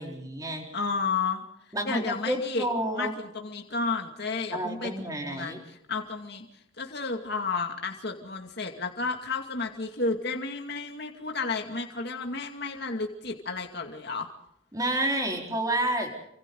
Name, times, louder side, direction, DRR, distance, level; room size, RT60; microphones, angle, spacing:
voice 1, 0.0-0.7 1.7-3.2 4.5-5.6 14.7-16.1, right 1 dB, 15° right, 1 dB, 4.5 m, -29 dB
voice 2, 0.7-1.5 1.9-2.7 3.0-14.3, left 4 dB, 55° left, 3 dB, 2.4 m, -32 dB
29.0 x 25.5 x 3.9 m, 0.75 s
head